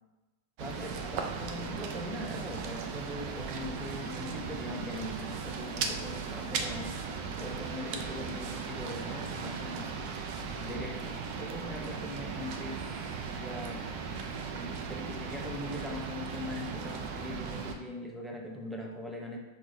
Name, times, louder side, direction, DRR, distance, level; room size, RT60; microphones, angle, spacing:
voice 1, 0.6-7.0 7.4-9.9 10.6-13.8 14.5-19.4, left 1 dB, ahead, -1 dB, 0.5 m, -41 dB
sound 1, 0.6-17.7, right 5 dB, 55° right, 0.4 m, -37 dB
4.5 x 2.1 x 2.6 m, 1.1 s
hypercardioid pair, 120°, 0 cm